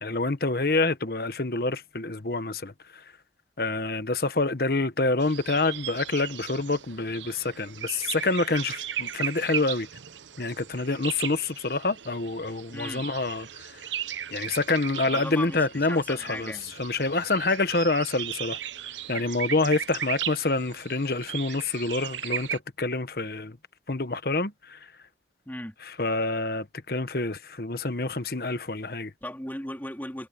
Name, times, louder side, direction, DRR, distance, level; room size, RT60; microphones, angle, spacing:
voice 1, 0.0-2.7 3.6-9.9 10.4-13.7 14.3-16.5 16.8-18.6 19.1-23.6 23.9-24.8 25.9-29.1, left 3 dB, 55° left, 1.2 m, -27 dB
sound 1, 5.2-22.6, right 10 dB, 90° right, 0.8 m, -37 dB
voice 2, 12.7-13.0 15.1-16.7 25.4-25.7 29.2-30.3, left 1 dB, 10° left, 2.7 m, -37 dB
head